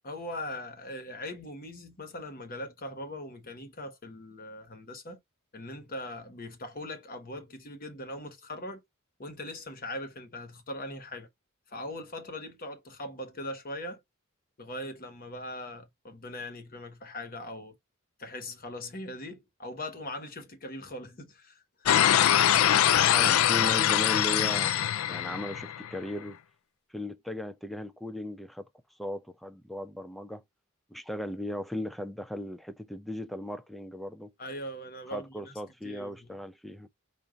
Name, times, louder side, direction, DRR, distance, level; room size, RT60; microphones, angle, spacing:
voice 1, 0.0-5.2 5.5-8.8 9.2-11.3 11.7-14.0 14.6-17.7 18.2-21.6 22.5-22.7 34.4-35.5 35.8-36.3, left 1 dB, 45° left, 1.2 m, -40 dB
sound 1, 21.9-26.0, left 10 dB, 80° left, 0.4 m, -23 dB
voice 2, 22.6-24.8 25.1-26.4 26.9-28.7 29.0-30.4 30.9-34.3 35.1-36.9, left 1 dB, ahead, 0.4 m, -37 dB
4.9 x 2.5 x 3.8 m
head